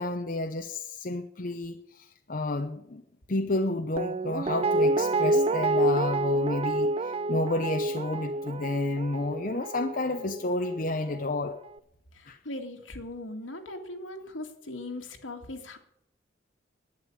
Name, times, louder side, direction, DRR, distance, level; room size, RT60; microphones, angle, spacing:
voice 1, 0.0-3.0 3.3-11.6 12.3-12.4, left 2 dB, 45° left, 6 dB, 0.7 m, -31 dB
Guitar, 4.0-11.0 11.3-11.4, right 2 dB, 30° right, 0.4 m, -28 dB
voice 2, 12.1-15.8, left 2 dB, 90° left, 3 dB, 2.2 m, -39 dB
11.5 x 9.2 x 9.6 m, 0.75 s
head